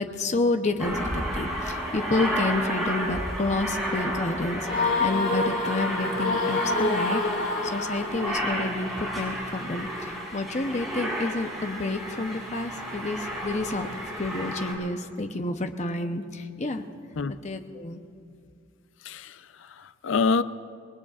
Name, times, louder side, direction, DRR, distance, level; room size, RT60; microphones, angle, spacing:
voice 1, 0.0-4.7 5.0-13.9 14.2-16.8 17.3-18.0, left 2 dB, 35° left, 0.8 m, -29 dB
Aircraft, 0.8-14.7, equal, ahead, 4.8 m, -32 dB
sound 1, 4.7-8.5, left 2 dB, 60° left, 2.1 m, -27 dB
voice 2, 19.0-20.4, left 4 dB, 75° left, 0.5 m, -27 dB
26.5 x 20.0 x 2.5 m
head